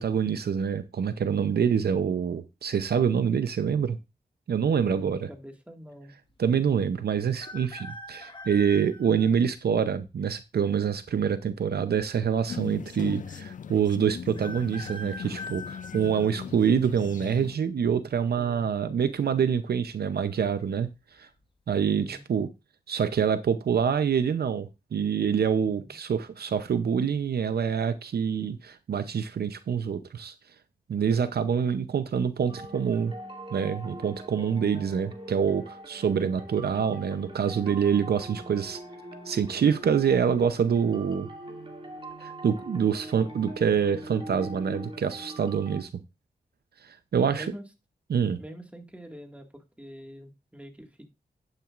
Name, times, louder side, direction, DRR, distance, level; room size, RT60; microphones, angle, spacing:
voice 1, 0.0-4.0 4.5-5.3 6.4-20.9 21.2-21.3 21.7-22.5 22.9-30.3 30.9-33.1 33.5-38.8 39.3-41.3 42.2-45.9 46.8-47.5 48.1-48.4, right 7 dB, 75° right, 11 dB, 0.7 m, -26 dB
voice 2, 4.9-6.1 16.2-16.6 18.3-18.7 21.8-22.2 25.6-25.9 47.2-47.6 48.4-51.1, equal, 10° right, 4 dB, 1.9 m, -45 dB
sound 1, 7.3-9.4 10.0-10.1 11.2-11.9 12.2-12.3 12.4-12.5 14.3-17.0 17.5-17.9 19.0-19.4 19.6-19.7 20.3-20.6 21.1-21.3, left 2 dB, 30° left, 1.0 m, -43 dB
sound 2, 12.5-17.6, left 7 dB, 50° left, 0.4 m, -39 dB
sound 3, 32.5-45.8, right 1 dB, 35° right, 2.2 m, -43 dB
10.5 x 9.0 x 2.5 m, 0.24 s
wide cardioid pair, 90°, 17 cm